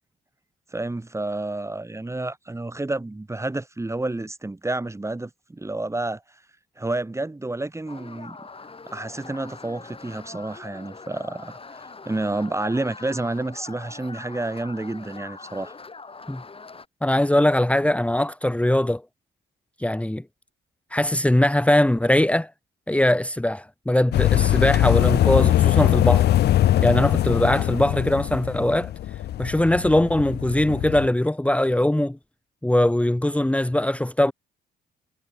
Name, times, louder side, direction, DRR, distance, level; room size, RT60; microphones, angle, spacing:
voice 1, 0.7-6.2 6.8-8.4 8.9-15.7, right 2 dB, 15° right, 2.6 m, -30 dB
sound 1, 7.9-16.9, left 4 dB, 30° left, 4.6 m, -42 dB
voice 2, 17.0-19.0 19.8-20.2 20.9-22.5 22.9-26.3 26.8-28.9 29.4-32.2 32.6-34.3, left 1 dB, 5° left, 2.0 m, -21 dB
sound 2, 24.1-31.1, left 13 dB, 55° left, 0.4 m, -21 dB
cardioid pair, 90°, 20 cm